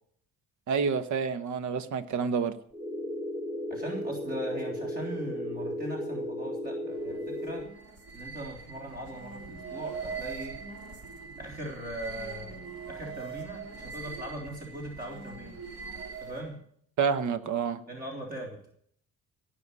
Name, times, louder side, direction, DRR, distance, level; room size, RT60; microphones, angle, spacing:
voice 1, 0.7-2.5 17.0-17.8, right 6 dB, 60° right, 1.3 m, -28 dB
sound 1, 2.7-7.7, equal, 10° right, 1.6 m, -35 dB
voice 2, 3.7-7.7 8.1-10.6 11.4-15.6 16.2-16.6 17.9-18.7, right 1 dB, 25° right, 3.6 m, -40 dB
sound 2, 6.9-16.6, right 5 dB, 45° right, 3.4 m, -42 dB
18.0 x 6.1 x 9.8 m
cardioid pair, 125°, 33 cm